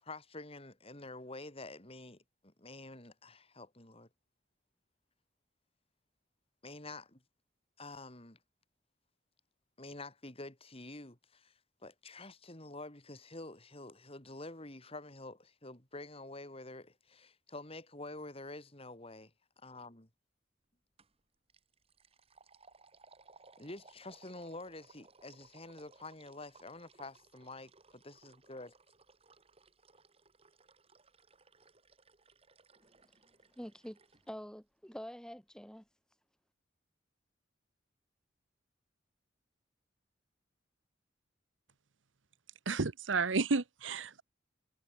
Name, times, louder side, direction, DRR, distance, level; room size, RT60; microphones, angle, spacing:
voice 1, 0.0-4.1 6.6-7.2 7.8-8.4 9.8-19.3 19.6-20.1 23.6-28.7, left 2 dB, 30° left, 3.7 m, -48 dB
sound 1, 21.0-21.2 21.5-34.3, right 4 dB, 30° right, 3.3 m, -63 dB
voice 2, 33.6-34.0 34.3-35.8, equal, 5° left, 1.7 m, -46 dB
voice 3, 42.7-44.2, right 4 dB, 85° right, 1.0 m, -31 dB
head